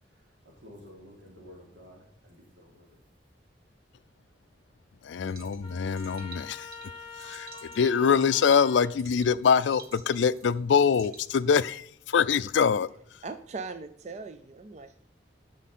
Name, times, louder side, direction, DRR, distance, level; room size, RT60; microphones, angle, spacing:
voice 1, 0.0-3.0, left 1 dB, 90° right, -2 dB, 3.3 m, -52 dB
voice 2, 5.0-6.7 7.2-7.5 7.7-12.9, left 6 dB, 85° left, 16 dB, 0.4 m, -24 dB
sound 1, 5.3-11.7, right 5 dB, 55° right, 1.1 m, -51 dB
Trumpet, 5.6-9.0, left 5 dB, 30° left, 0.7 m, -45 dB
voice 3, 13.2-15.0, right 4 dB, 40° right, 9 dB, 0.4 m, -40 dB
9.8 x 6.4 x 4.2 m, 0.64 s
head